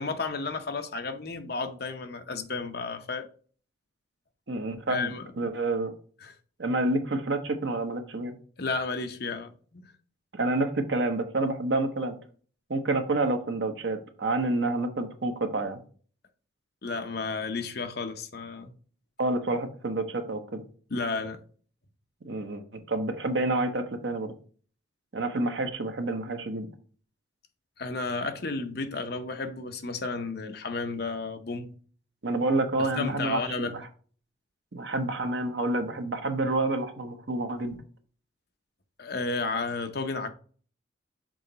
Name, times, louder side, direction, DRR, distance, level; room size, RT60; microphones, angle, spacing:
voice 1, 0.0-3.3 4.9-5.3 6.2-6.3 8.6-9.9 16.8-18.7 20.9-21.4 27.8-31.7 32.8-33.8 39.0-40.3, left 3 dB, 50° left, 0.7 m, -32 dB
voice 2, 4.5-5.9 6.6-8.3 10.3-12.2 12.7-15.8 19.2-20.6 22.2-22.6 22.9-24.3 25.1-26.7 32.2-33.7 34.7-37.8, right 2 dB, 60° right, 0.9 m, -28 dB
6.3 x 3.9 x 3.9 m
head